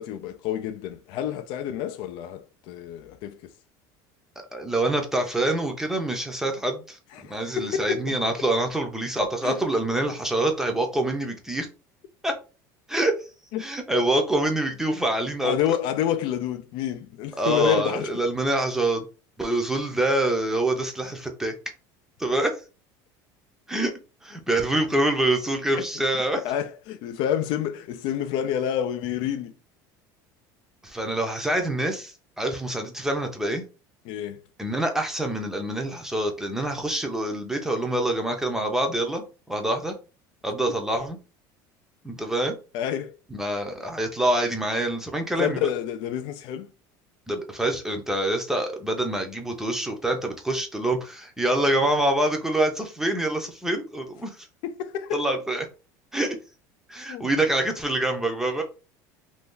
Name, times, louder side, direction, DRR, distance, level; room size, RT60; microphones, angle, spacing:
voice 1, 0.0-3.4 7.1-8.2 9.4-9.6 13.5-13.7 15.4-18.1 26.4-29.5 34.0-34.4 42.7-43.1 45.4-46.7 54.6-55.4 57.1-57.3, left 10 dB, 60° left, 0.4 m, -28 dB
voice 2, 4.5-7.0 7.2-11.7 12.2-12.3 12.9-13.1 13.6-15.5 17.4-19.1 19.4-21.5 22.2-22.5 23.7-23.9 24.2-26.4 30.8-33.6 34.6-39.9 40.4-41.2 42.0-42.5 43.3-45.6 47.3-54.3 55.1-55.7 56.1-56.4 56.9-58.6, right 1 dB, 5° right, 0.6 m, -26 dB
2.6 x 2.3 x 3.6 m
cardioid pair, 135°, 9 cm